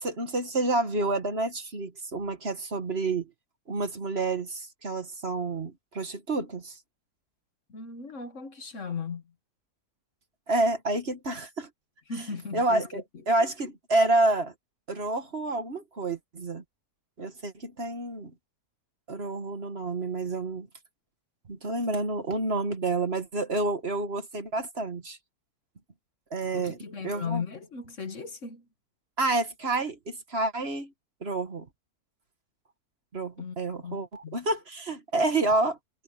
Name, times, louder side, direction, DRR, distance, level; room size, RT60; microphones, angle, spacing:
voice 1, 0.0-3.3 3.7-6.8 10.5-11.7 12.5-14.5 14.9-16.6 17.2-18.3 19.1-20.7 21.5-25.2 26.3-26.8 27.0-27.4 29.2-30.9 31.2-31.7 33.1-35.8, right 2 dB, 40° right, 1.9 m, -29 dB
voice 2, 7.7-9.2 12.1-13.0 26.5-28.7 33.4-33.6 33.8-34.0 34.2-34.4, left 5 dB, 55° left, 1.7 m, -36 dB
omnidirectional pair, 1.6 m